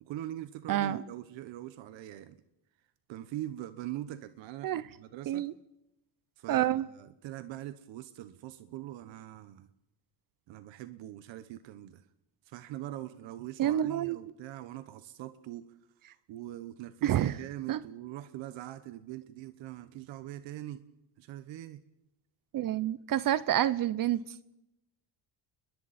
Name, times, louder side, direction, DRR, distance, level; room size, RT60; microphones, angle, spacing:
voice 1, 0.0-2.4 3.1-5.5 6.4-6.7 6.9-9.7 10.5-12.0 12.5-15.7 16.3-20.8 21.2-21.8, right 14 dB, 70° right, 12 dB, 1.1 m, -42 dB
voice 2, 0.7-1.0 4.6-4.8 5.3-5.5 6.5-6.9 13.6-14.2 17.0-17.4 17.7-17.8 22.5-24.2, right 12 dB, 45° right, 17 dB, 0.7 m, -28 dB
30.0 x 21.5 x 4.3 m, 0.87 s
cardioid pair, 145°, 46 cm